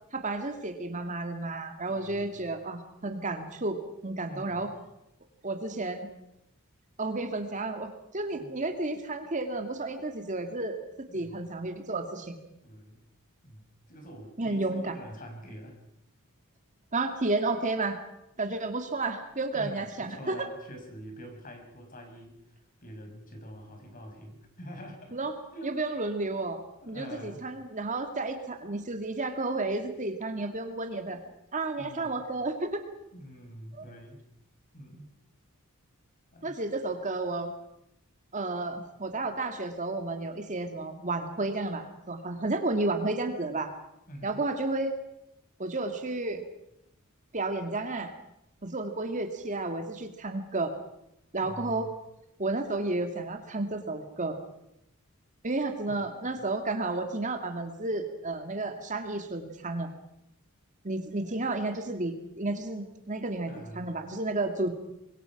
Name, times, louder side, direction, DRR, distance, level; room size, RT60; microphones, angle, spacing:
voice 1, 0.1-4.7 5.4-6.1 7.0-10.8 11.1-12.4 14.4-14.9 16.9-18.0 18.4-20.4 25.1-25.3 25.6-26.6 26.9-31.2 31.5-32.8 33.7-33.9 36.4-37.5 38.3-43.7 44.2-44.9 45.6-46.4 47.3-48.1 48.6-50.7 51.3-51.9 52.4-54.4 55.4-59.9 60.8-64.7, right 2 dB, 35° right, 6 dB, 2.1 m, -32 dB
voice 2, 1.9-2.4 4.3-4.7 8.3-8.6 11.1-11.4 12.6-13.0 13.4-15.8 19.5-25.2 25.5-25.8 26.8-27.4 31.7-32.2 33.1-34.2 34.7-35.1 36.3-36.6 44.1-44.4 51.4-51.9 55.9-56.5 63.4-64.0, equal, 40° left, 3 dB, 5.5 m, -46 dB
25.5 x 22.5 x 6.0 m, 0.83 s
head